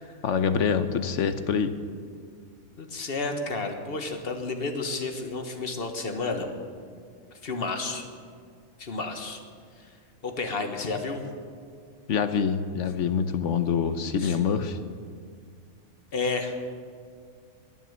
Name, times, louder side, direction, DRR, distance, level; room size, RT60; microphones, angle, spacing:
voice 1, 0.2-1.7 12.1-14.8, left 6 dB, 65° left, 10 dB, 1.0 m, -25 dB
voice 2, 2.8-6.5 7.4-8.1 8.8-9.4 9.8-9.9 10.2-11.2 14.2-14.4 16.1-16.5, left 3 dB, 45° left, 5 dB, 1.5 m, -31 dB
21.0 x 7.2 x 7.4 m, 2.1 s
omnidirectional pair, 1.4 m